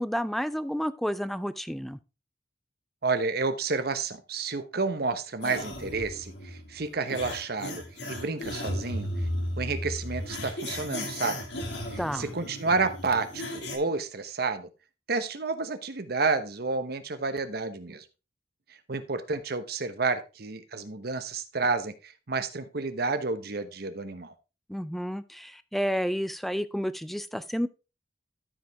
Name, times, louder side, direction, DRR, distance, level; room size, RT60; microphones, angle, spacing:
voice 1, 0.0-2.0 12.0-12.3 24.7-27.7, equal, ahead, 0.4 m, -30 dB
voice 2, 3.0-9.1 9.6-11.4 11.9-14.7 15.1-18.0 18.9-24.3, right 4 dB, 60° right, 1.0 m, -30 dB
sound 1, 5.4-13.8, left 1 dB, 70° left, 2.1 m, -35 dB
13.0 x 5.0 x 3.5 m
head